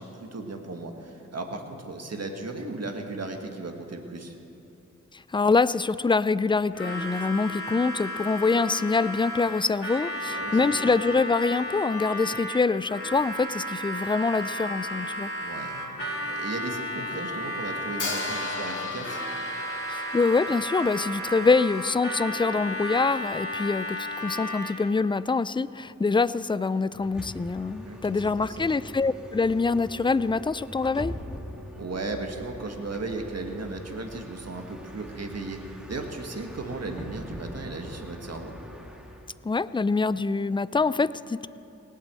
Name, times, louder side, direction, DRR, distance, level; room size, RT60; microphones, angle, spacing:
voice 1, 0.0-4.4 10.3-10.8 15.4-19.2 27.8-28.7 31.8-38.6, right 3 dB, 55° right, 3 dB, 1.6 m, -36 dB
voice 2, 5.1-15.3 19.9-31.1 39.4-41.5, left 4 dB, 15° left, 17 dB, 0.4 m, -25 dB
Harmonica, 6.7-25.0, equal, 45° left, 2.5 m, -33 dB
Hi-hat, 18.0-22.0, left 3 dB, 80° left, 1.9 m, -37 dB
Bus, 26.9-39.3, equal, ahead, 1.9 m, -42 dB
18.0 x 8.4 x 7.5 m, 2.9 s
cardioid pair, 45°, 30 cm